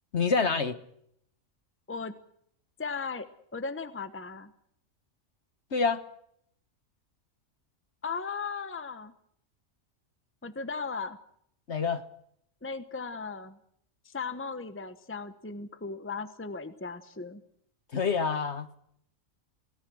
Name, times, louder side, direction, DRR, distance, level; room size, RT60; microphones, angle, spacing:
voice 1, 0.1-0.8 5.7-6.0 11.7-12.0 17.9-18.8, left 5 dB, 55° left, 1.6 m, -27 dB
voice 2, 2.8-4.5 8.0-9.1 10.4-11.2 12.6-13.6 14.0-17.4, left 4 dB, 10° left, 1.1 m, -37 dB
27.5 x 18.0 x 6.3 m
omnidirectional pair, 1.4 m